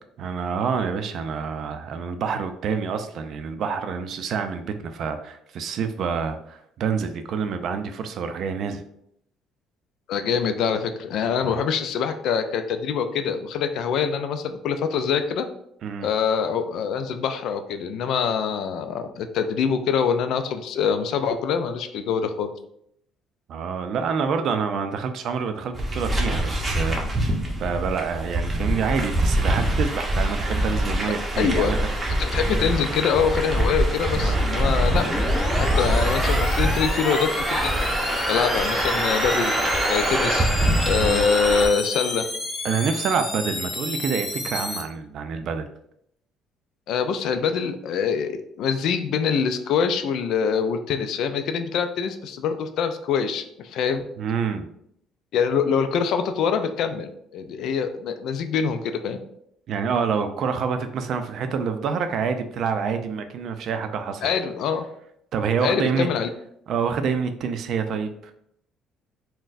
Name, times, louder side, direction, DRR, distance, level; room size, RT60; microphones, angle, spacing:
voice 1, 0.2-8.8 11.4-11.6 15.8-16.1 23.5-31.9 34.1-34.4 41.0-41.2 42.6-45.7 54.2-54.7 59.7-64.3 64.7-64.8 65.3-66.1 66.7-68.1, right 6 dB, 60° right, 8 dB, 0.4 m, -27 dB
voice 2, 10.1-15.5 16.0-22.5 31.4-31.7 32.2-37.7 38.3-39.5 39.9-40.5 40.9-42.2 46.9-54.0 55.3-59.2 64.2-64.9 65.6-66.3, left 6 dB, 70° left, 8 dB, 0.3 m, -24 dB
sound 1, 25.7-41.7, right 1 dB, 20° right, 0.7 m, -24 dB
sound 2, 34.8-44.8, left 2 dB, 25° left, 0.6 m, -30 dB
3.9 x 2.1 x 2.5 m, 0.73 s
cardioid pair, 100°, 0 cm